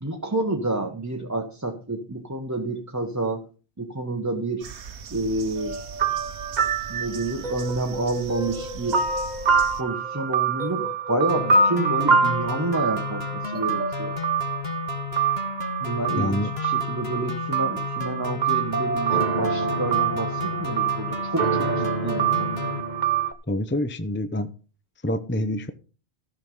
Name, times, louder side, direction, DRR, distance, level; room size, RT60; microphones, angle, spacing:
voice 1, 0.0-3.5 3.8-4.7 5.1-5.8 6.9-9.1 9.8-14.1 15.8-22.7, right 2 dB, 15° right, 3 dB, 1.1 m, -29 dB
sound 1, 4.6-9.8, right 6 dB, 80° right, 1.3 m, -40 dB
sound 2, 5.6-23.3, right 5 dB, 45° right, 1.0 m, -25 dB
sound 3, 11.3-22.8, left 7 dB, 65° left, 1.6 m, -33 dB
voice 2, 16.2-16.5 23.5-24.5 25.0-25.7, left 1 dB, 15° left, 10 dB, 0.6 m, -26 dB
14.0 x 6.3 x 5.4 m, 0.36 s
omnidirectional pair, 1.1 m